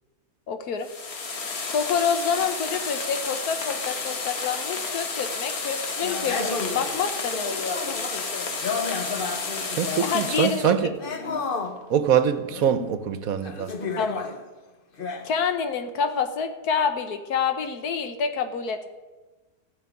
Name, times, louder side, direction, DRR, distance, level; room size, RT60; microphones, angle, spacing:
voice 1, 0.5-0.9 1.7-8.3 10.0-10.7 14.0-14.2 15.2-18.9, left 6 dB, 90° left, 8 dB, 1.5 m, -27 dB
sound 1, 0.8-10.7, left 4 dB, 70° left, 2.0 m, -31 dB
sound 2, 6.0-10.2 10.7-11.8 12.5-12.7 13.4-14.4 15.0-15.3, left 4 dB, 40° left, 1.1 m, -32 dB
voice 2, 9.8-10.9 11.9-13.7, right 8 dB, 70° right, 12 dB, 1.3 m, -23 dB
15.0 x 5.8 x 9.6 m, 1.2 s
omnidirectional pair, 1.6 m